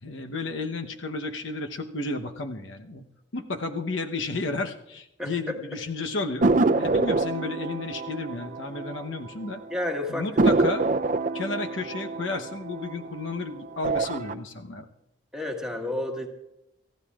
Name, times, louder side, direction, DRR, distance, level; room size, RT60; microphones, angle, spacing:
voice 1, 0.0-3.0 3.3-6.5 6.8-9.6 10.1-10.8 11.3-14.9, left 3 dB, 80° left, 5 dB, 1.0 m, -32 dB
voice 2, 5.2-5.5 9.7-10.3 15.3-16.3, left 1 dB, 5° right, 1 dB, 1.7 m, -30 dB
sound 1, 6.4-9.5 9.8-9.9 10.4-13.3 13.7-14.3, right 3 dB, 40° right, 0.5 m, -25 dB
28.5 x 14.5 x 2.4 m, 0.86 s
head